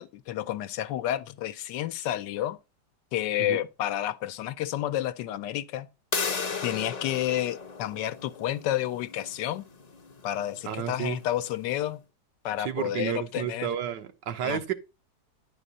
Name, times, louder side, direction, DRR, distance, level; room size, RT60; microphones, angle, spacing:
voice 1, 0.0-2.6 3.1-5.9 6.6-9.7 10.2-12.0 12.4-13.7 14.4-14.7, left 12 dB, 90° left, 1.3 m, -30 dB
sound 1, 6.1-11.7, left 5 dB, 50° left, 0.5 m, -36 dB
voice 2, 10.6-11.2 12.6-14.7, right 9 dB, 90° right, 1.5 m, -31 dB
10.0 x 5.0 x 3.9 m
omnidirectional pair, 1.9 m